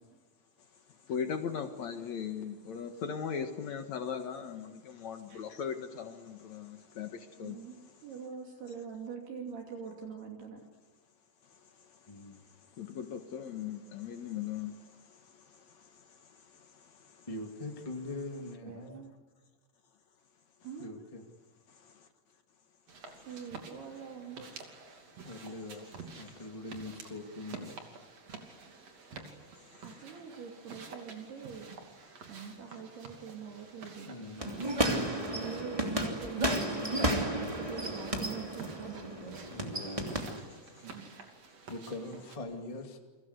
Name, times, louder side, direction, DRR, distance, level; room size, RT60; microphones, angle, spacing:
voice 1, 1.1-7.6 12.8-14.8, left 7 dB, 65° left, 1.7 m, -38 dB
voice 2, 7.4-7.8 8.0-10.6 18.6-19.1 20.6-20.9 23.3-24.5 29.8-31.8 32.3-34.1 35.1-39.4 40.8-41.1, right 6 dB, 60° right, 4.6 m, -44 dB
voice 3, 12.1-12.4 17.3-19.0 20.8-21.2 25.2-27.8 34.0-34.7 39.5-40.3 41.2-41.3 41.7-43.0, left 2 dB, 45° left, 0.4 m, -42 dB
sound 1, 22.9-42.4, right 4 dB, 40° right, 3.3 m, -50 dB
sound 2, 34.4-40.4, right 1 dB, 10° right, 1.7 m, -33 dB
29.5 x 24.0 x 8.2 m
omnidirectional pair, 5.4 m